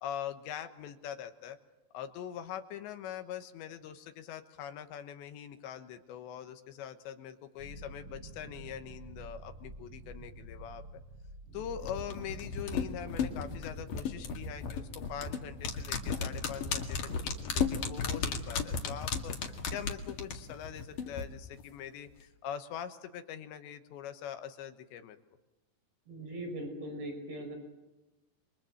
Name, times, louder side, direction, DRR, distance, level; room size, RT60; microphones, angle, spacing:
voice 1, 0.0-1.6 1.9-10.8 11.5-19.3 19.7-25.2, left 9 dB, 80° left, 8 dB, 3.3 m, -43 dB
sound 1, 7.6-21.5, right 2 dB, 35° right, 3.3 m, -50 dB
sound 2, 11.8-21.2 21.5-21.6, left 6 dB, 55° left, 3.2 m, -34 dB
voice 2, 26.1-27.6, right 1 dB, 70° right, 4 dB, 7.7 m, -40 dB
28.0 x 23.0 x 7.8 m, 1.0 s
omnidirectional pair, 5.2 m